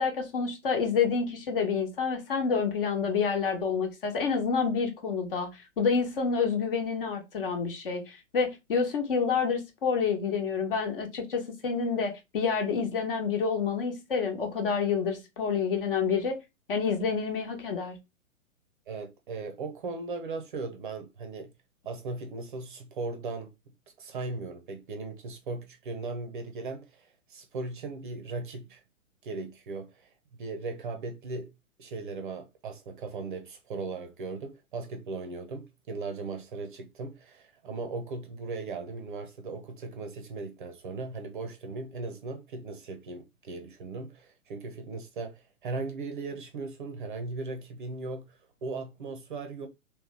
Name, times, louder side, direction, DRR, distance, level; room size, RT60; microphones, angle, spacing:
voice 1, 0.0-5.5 5.8-16.4 16.7-18.0, left 5 dB, 40° left, 1.1 m, -28 dB
voice 2, 18.9-21.5 21.8-23.5 24.0-28.8 29.2-30.1 30.4-31.5 31.8-49.7, right 3 dB, 35° right, 0.7 m, -38 dB
3.2 x 3.1 x 3.2 m
figure-of-eight pair, 120°, 42 cm